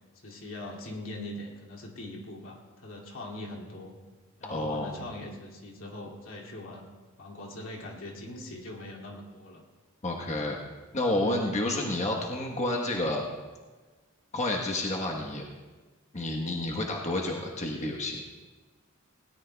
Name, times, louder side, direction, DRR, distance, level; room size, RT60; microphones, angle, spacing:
voice 1, 0.1-4.0 4.4-6.9 7.2-9.6, left 1 dB, 70° left, -2 dB, 2.5 m, -41 dB
voice 2, 4.5-4.9 10.0-10.6 10.9-13.2 14.3-15.4 16.1-18.2, left 1 dB, 35° left, -1 dB, 1.2 m, -30 dB
20.5 x 17.5 x 2.3 m, 1.3 s
head